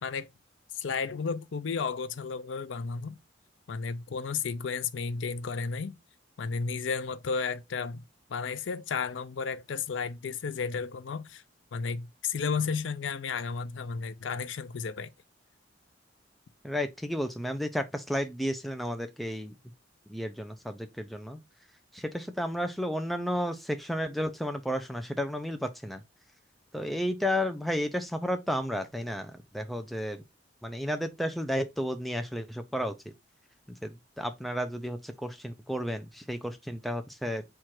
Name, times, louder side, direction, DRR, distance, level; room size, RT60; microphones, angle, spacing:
voice 1, 0.7-3.2 3.7-6.0 6.4-8.0 8.3-11.4 11.7-15.1, left 5 dB, 80° left, 0.5 m, -33 dB
voice 2, 16.6-19.5 20.1-21.4 21.9-26.0 26.7-30.2 30.6-33.0 33.8-37.4, equal, ahead, 0.4 m, -32 dB
4.5 x 2.4 x 4.3 m
head